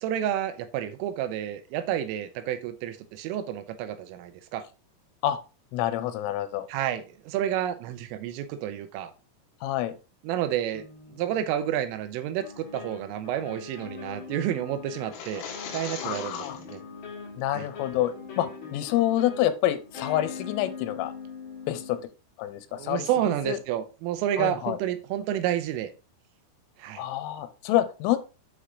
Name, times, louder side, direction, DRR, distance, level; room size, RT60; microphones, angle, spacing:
voice 1, 0.0-4.6 6.7-9.1 10.2-10.8 11.1-15.4 15.7-16.8 17.5-17.7 22.7-25.9 26.8-27.0, right 11 dB, 85° right, 3.4 m, -30 dB
voice 2, 5.7-6.7 9.6-9.9 16.0-16.6 17.4-21.1 21.7-22.0 22.4-23.6 24.4-24.8 27.0-28.2, left 13 dB, 90° left, 3.3 m, -27 dB
sound 1, 10.7-11.9 12.4-22.0, left 5 dB, 40° left, 3.8 m, -42 dB
sound 2, 15.0-16.8, left 7 dB, 65° left, 3.3 m, -39 dB
8.6 x 4.9 x 3.9 m
omnidirectional pair, 5.8 m